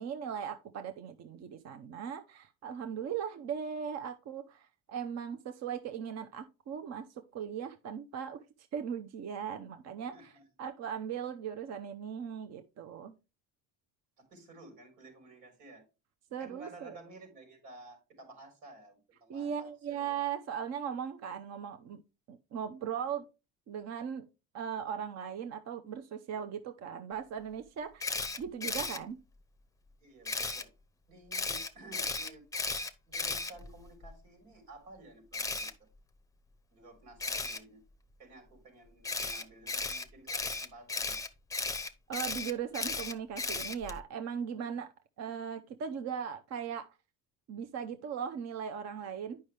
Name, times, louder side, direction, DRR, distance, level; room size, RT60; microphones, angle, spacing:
voice 1, 0.0-8.4 8.7-10.1 10.6-13.2 16.3-17.0 19.3-22.0 22.3-23.3 23.7-24.3 24.5-29.2 42.1-44.9 45.2-46.9 47.5-49.4, right 8 dB, 50° right, 8 dB, 0.8 m, -38 dB
voice 2, 10.1-10.4 14.2-15.8 16.4-20.3 30.0-30.7 31.1-32.5 33.1-35.7 36.7-37.8 38.2-41.2, right 2 dB, 90° right, 4 dB, 4.3 m, -53 dB
Camera, 28.0-29.0 30.2-30.6 31.3-34.1 35.3-35.7 37.2-37.6 39.0-44.0, left 3 dB, 10° left, 0.7 m, -35 dB
9.3 x 5.6 x 3.3 m, 0.28 s
cardioid pair, 120°, 35 cm